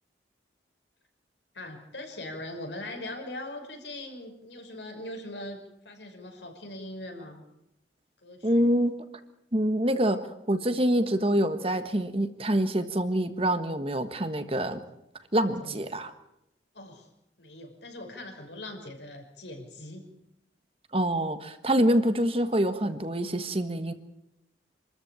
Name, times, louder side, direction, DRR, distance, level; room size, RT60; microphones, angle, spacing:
voice 1, 1.5-7.4 8.2-8.7 15.4-15.8 16.7-17.1 17.4-20.0, left 1 dB, 85° left, 3 dB, 5.7 m, -41 dB
voice 2, 8.4-9.0 9.5-10.2 10.5-14.8 15.3-16.1 20.9-23.9, right 1 dB, 35° right, 10 dB, 1.5 m, -26 dB
27.0 x 13.5 x 8.9 m, 0.85 s
head